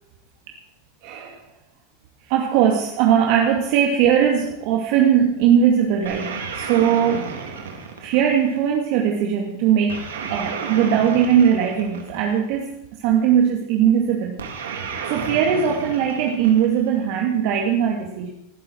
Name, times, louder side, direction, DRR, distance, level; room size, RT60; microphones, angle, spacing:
voice 1, 1.0-1.4 2.3-7.3 8.0-12.7 13.0-18.3, right 8 dB, 60° right, 0 dB, 2.3 m, -20 dB
sound 1, 6.0-8.6 9.9-12.5 14.4-17.0, right 5 dB, 90° right, 3.2 m, -32 dB
20.0 x 11.0 x 4.6 m, 0.82 s
hypercardioid pair, 110°, 0 cm